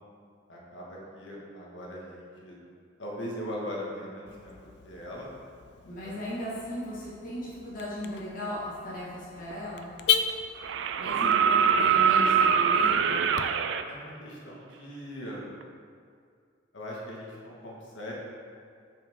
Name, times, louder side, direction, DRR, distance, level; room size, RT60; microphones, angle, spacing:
voice 1, 0.5-2.6 3.0-5.3 6.0-6.1 11.0-11.3 13.9-15.5 16.7-18.1, equal, 85° left, -4 dB, 1.6 m, -40 dB
Car / Alarm, 4.3-13.4, left 8 dB, 65° left, 0.4 m, -36 dB
voice 2, 5.8-9.9 11.0-13.2, equal, 45° left, -7 dB, 1.8 m, -37 dB
sound 1, 9.5-9.6 10.6-13.8 15.6-15.7, right 7 dB, 75° right, 0.3 m, -23 dB
7.2 x 5.6 x 3.7 m, 2.2 s
head